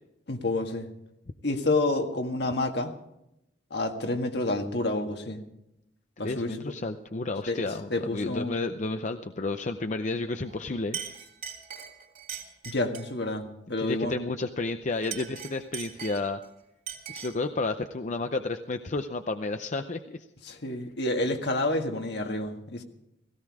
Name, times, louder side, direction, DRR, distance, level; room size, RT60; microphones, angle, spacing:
voice 1, 0.3-0.9 1.4-2.9 3.7-5.4 6.2-6.6 7.5-7.6 7.9-8.5 12.6-14.2 20.4-22.8, left 2 dB, 65° left, 5 dB, 1.8 m, -29 dB
voice 2, 6.2-11.0 13.8-16.4 17.1-20.3, left 3 dB, 45° left, 8 dB, 0.6 m, -31 dB
Chink clink, 10.4-10.6 10.9-13.2 14.9-16.5 16.9-17.5, right 8 dB, 50° right, 3.2 m, -40 dB
17.0 x 16.5 x 4.8 m, 0.85 s
head